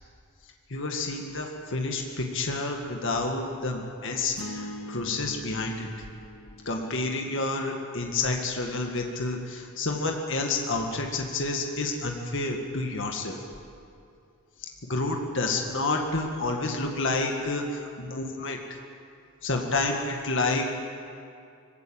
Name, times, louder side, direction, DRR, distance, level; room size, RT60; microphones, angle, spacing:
voice 1, 0.7-5.9 6.7-13.4 14.9-18.6 19.4-20.7, left 3 dB, 55° left, 2 dB, 1.9 m, -29 dB
sound 1, 4.4-8.6, equal, 80° left, 1.4 m, -43 dB
20.0 x 16.5 x 8.9 m, 2.4 s
head